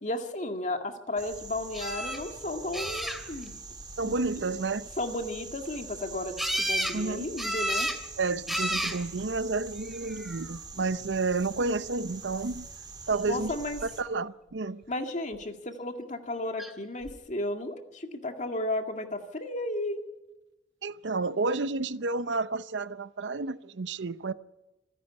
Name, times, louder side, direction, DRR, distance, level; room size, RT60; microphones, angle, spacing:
voice 1, 0.0-3.6 4.0-4.5 5.0-7.9 13.3-13.8 14.9-20.0, left 1 dB, 45° left, 2.0 m, -34 dB
sound 1, 1.2-14.0, right 4 dB, 25° right, 2.2 m, -44 dB
sound 2, 1.7-2.2 2.7-3.5 6.4-7.0 7.4-8.0 8.5-9.0 9.9-10.4 16.6-16.7 17.0-17.1, equal, ahead, 2.4 m, -31 dB
voice 2, 4.0-4.9 6.9-7.4 8.2-12.7 13.1-13.6 13.8-14.8 20.8-24.3, right 3 dB, 80° right, 0.7 m, -30 dB
27.0 x 10.0 x 9.8 m
head